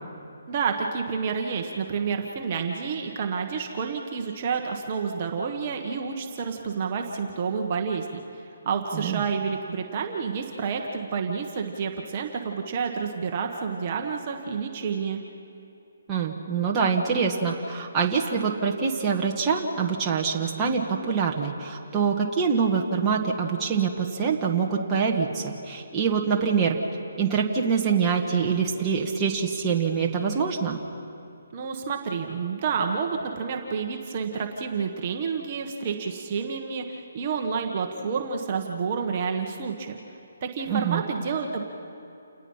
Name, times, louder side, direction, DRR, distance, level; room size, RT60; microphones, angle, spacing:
voice 1, 0.5-15.2 31.5-40.0 40.4-41.6, right 5 dB, 35° right, 2 dB, 1.4 m, -29 dB
voice 2, 16.1-26.8 27.2-30.8 40.7-41.0, right 6 dB, 15° right, -2 dB, 1.6 m, -25 dB
29.0 x 18.5 x 5.7 m, 2.8 s
hypercardioid pair, 160°, 0 cm